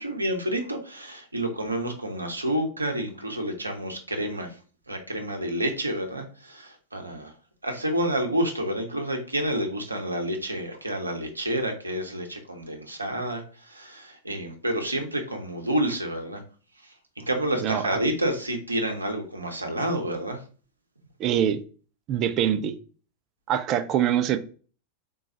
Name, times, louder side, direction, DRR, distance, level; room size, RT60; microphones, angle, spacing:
voice 1, 0.0-4.5 4.9-7.3 7.6-16.4 16.8-20.4, right 1 dB, 85° right, 4 dB, 0.8 m, -29 dB
voice 2, 17.6-18.0 21.2-21.6 22.1-22.7 23.5-24.4, right 10 dB, 35° right, 9 dB, 0.5 m, -24 dB
3.8 x 3.6 x 2.9 m, 0.39 s
figure-of-eight pair, 90°, 0 cm